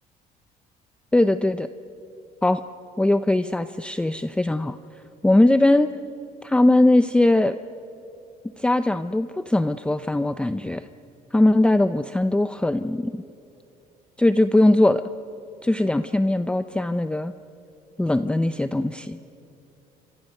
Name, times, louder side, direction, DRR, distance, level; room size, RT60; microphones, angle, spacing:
voice 1, 1.1-1.7 2.4-2.6 3.0-4.8 5.2-5.9 6.4-7.6 8.6-10.9 11.3-13.2 14.2-15.0 15.6-17.3 18.0-19.2, left 1 dB, 5° left, 11 dB, 0.6 m, -20 dB
28.0 x 26.0 x 6.6 m, 2.8 s
cardioid pair, 110°, 17 cm